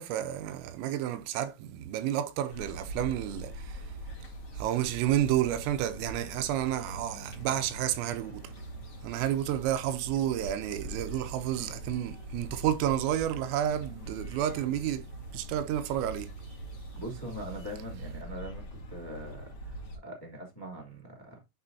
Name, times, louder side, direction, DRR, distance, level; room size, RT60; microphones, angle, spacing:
voice 1, 0.0-3.8 4.6-8.5 9.0-15.1 15.3-16.3, right 11 dB, 85° right, 3.4 m, -30 dB
sound 1, 2.5-20.0, right 1 dB, 40° left, 2.0 m, -43 dB
voice 2, 17.0-19.7 20.0-21.4, equal, 25° left, 0.5 m, -42 dB
9.3 x 6.1 x 2.7 m
omnidirectional pair, 6.0 m